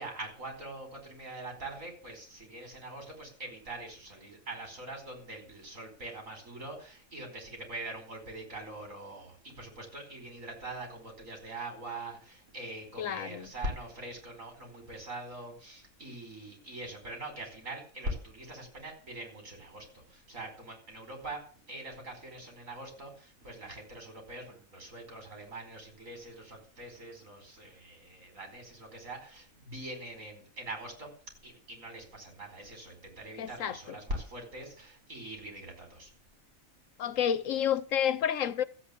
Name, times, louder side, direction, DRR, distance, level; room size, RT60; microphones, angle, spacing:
voice 1, 0.0-21.4 21.7-31.1 31.4-36.1, right 1 dB, 70° right, 5.1 m, -43 dB
voice 2, 13.0-13.5 33.4-33.8 37.0-38.6, left 9 dB, 70° left, 1.2 m, -29 dB
14.0 x 8.4 x 8.3 m
omnidirectional pair, 1.4 m